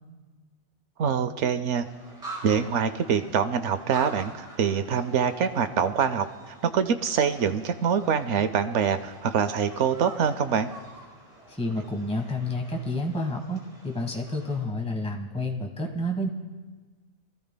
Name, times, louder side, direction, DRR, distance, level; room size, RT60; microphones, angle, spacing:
voice 1, 1.0-1.9 2.4-10.7, right 7 dB, 65° right, 10 dB, 0.8 m, -25 dB
sound 1, 1.8-14.6, right 2 dB, 25° right, 5.4 m, -46 dB
voice 2, 11.5-16.3, left 1 dB, 5° left, 2 dB, 1.1 m, -30 dB
22.5 x 14.5 x 2.2 m, 1.4 s
omnidirectional pair, 1.4 m